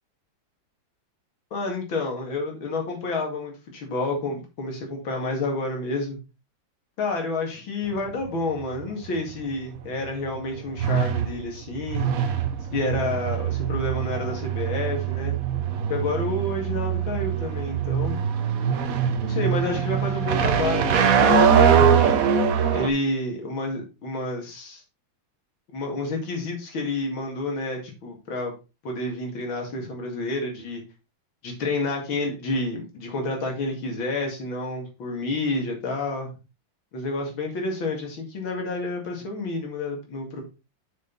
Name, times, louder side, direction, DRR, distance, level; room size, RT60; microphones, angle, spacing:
voice 1, 1.5-6.2 7.0-12.1 12.7-15.3 15.9-18.2 19.2-22.0 22.7-24.8 25.7-28.5 28.8-30.8 31.4-36.3 36.9-40.4, left 2 dB, 90° left, 1 dB, 2.9 m, -29 dB
sound 1, 7.8-22.9, right 7 dB, 55° right, 1.2 m, -23 dB
6.5 x 6.5 x 4.0 m, 0.29 s
omnidirectional pair, 2.1 m